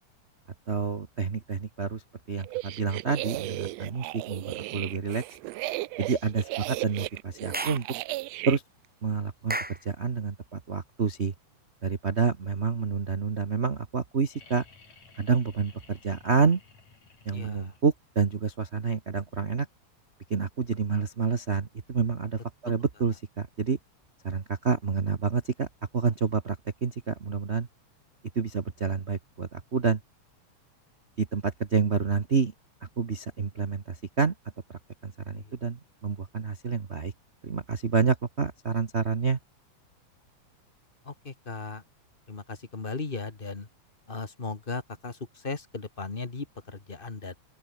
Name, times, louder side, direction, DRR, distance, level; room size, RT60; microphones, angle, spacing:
voice 1, 0.7-2.0 2.3-5.2 6.0-7.9 8.4-8.6 9.0-9.6 9.8-11.3 11.8-14.6 15.2-16.6 17.2-19.7 20.3-23.8 24.2-25.7 25.9-27.7 28.3-30.0 31.2-32.5 33.0-34.3 34.7-37.1 37.4-39.4, right 5 dB, 55° right, 0.7 m, -28 dB
sound 1, 2.4-8.6, right 19 dB, 80° right, 1.5 m, -35 dB
Clapping / Chirp tweet, 7.5-7.9 9.5-9.8, right 1 dB, 5° right, 0.8 m, -32 dB
sound 2, 14.3-18.1 19.8-19.9, left 5 dB, 70° left, 6.0 m, -56 dB
voice 2, 17.3-17.8 35.3-35.6 41.0-41.8 42.3-43.7 44.1-47.4, left 4 dB, 25° left, 1.5 m, -37 dB
open air
omnidirectional pair, 3.4 m